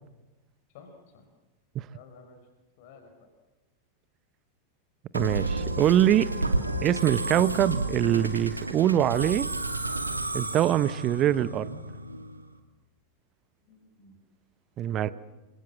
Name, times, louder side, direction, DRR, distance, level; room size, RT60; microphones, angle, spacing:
voice 1, 0.7-1.3 1.9-2.4 2.8-3.3 13.6-14.2 14.9-15.1, left 5 dB, 50° left, 5 dB, 5.4 m, -52 dB
voice 2, 5.1-6.3 6.8-9.5 10.3-11.7 14.8-15.1, right 11 dB, 35° right, 17 dB, 1.0 m, -23 dB
Musical instrument, 5.1-12.5, right 2 dB, 85° right, 2.4 m, -31 dB
29.0 x 25.0 x 7.4 m, 1.1 s
figure-of-eight pair, 90°, 0 cm